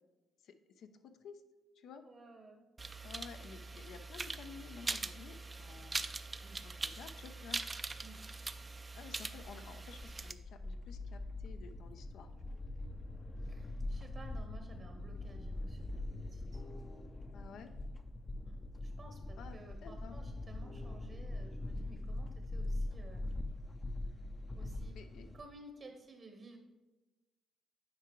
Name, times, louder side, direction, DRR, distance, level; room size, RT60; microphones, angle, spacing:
voice 1, 0.4-1.4 1.8-2.0 3.0-6.0 6.6-7.6 9.0-12.6 17.3-17.7 19.4-20.3 24.9-25.3, left 6 dB, 75° left, 8 dB, 0.5 m, -53 dB
voice 2, 2.0-2.6 6.4-6.6 8.0-8.2 13.4-16.6 18.4-23.3 24.6-24.9 25.3-26.6, right 2 dB, 40° right, 4 dB, 0.8 m, -55 dB
sound 1, 2.8-10.3, right 3 dB, 25° right, 0.3 m, -42 dB
sound 2, 10.0-25.4, left 2 dB, 30° left, 0.5 m, -42 dB
9.4 x 4.7 x 3.0 m, 1.2 s
cardioid pair, 90°, 0 cm